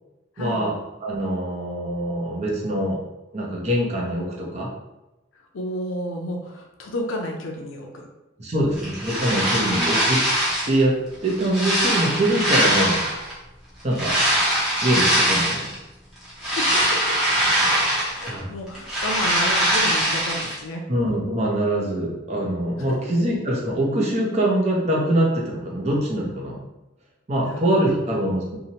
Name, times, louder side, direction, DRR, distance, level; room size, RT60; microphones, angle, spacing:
voice 1, 0.4-0.7 1.0-3.0 3.3-4.7 8.4-10.2 10.6-10.9 11.2-13.0 13.8-14.1 14.8-15.7 18.2-18.5 20.9-26.6 27.3-28.6, right 1 dB, 35° right, -3 dB, 0.5 m, -23 dB
voice 2, 5.5-8.1 9.7-10.0 16.6-17.2 18.1-20.8 22.8-23.1 27.5-28.5, left 1 dB, 90° left, 2 dB, 0.4 m, -32 dB
sound 1, 8.8-10.8 11.2-13.3 13.9-15.7 16.2-18.4 18.7-20.6, right 1 dB, ahead, 0.8 m, -22 dB
2.8 x 2.1 x 2.8 m, 0.99 s
head